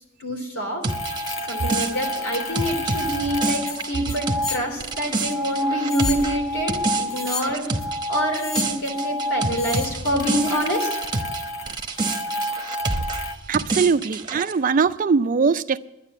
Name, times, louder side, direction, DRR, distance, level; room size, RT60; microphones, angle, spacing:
voice 1, 0.2-0.8 1.5-7.7 8.1-10.9, equal, 85° left, 3.2 m, -26 dB
sound 1, 0.8-11.4 11.7-14.5, right 3 dB, 20° right, 0.9 m, -28 dB
sound 2, 0.9-13.4, left 1 dB, 60° left, 0.9 m, -29 dB
voice 2, 13.5-15.8, right 5 dB, 40° right, 0.4 m, -21 dB
11.5 x 10.0 x 7.4 m
head